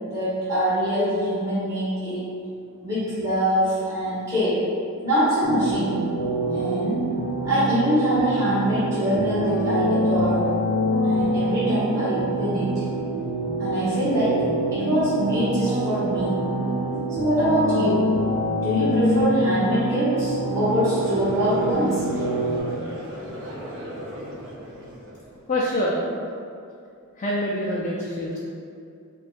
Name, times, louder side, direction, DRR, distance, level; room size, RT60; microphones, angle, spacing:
voice 1, 0.0-2.3 2.8-4.6 5.0-6.0 6.5-7.0 7.4-10.5 11.0-12.7 13.6-14.4 14.7-16.4 17.2-18.1 18.6-22.0, equal, 15° right, -14 dB, 1.1 m, -24 dB
sound 1, 5.4-22.6, right 1 dB, 55° left, 0.7 m, -25 dB
Conversation / Crowd, 20.3-25.6, equal, 65° right, 0.5 m, -37 dB
voice 2, 25.5-26.0 27.2-28.4, left 1 dB, 35° left, -5 dB, 0.4 m, -25 dB
5.1 x 2.3 x 2.5 m, 2.4 s
head